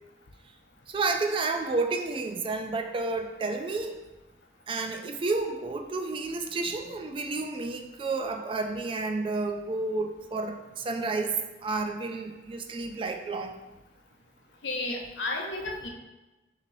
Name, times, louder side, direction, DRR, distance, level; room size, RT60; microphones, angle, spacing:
voice 1, 0.9-4.0 4.7-13.5, right 3 dB, 30° right, 5 dB, 0.3 m, -31 dB
voice 2, 14.6-15.9, left 2 dB, 90° left, 1 dB, 0.7 m, -32 dB
5.9 x 2.8 x 2.6 m, 1.1 s
head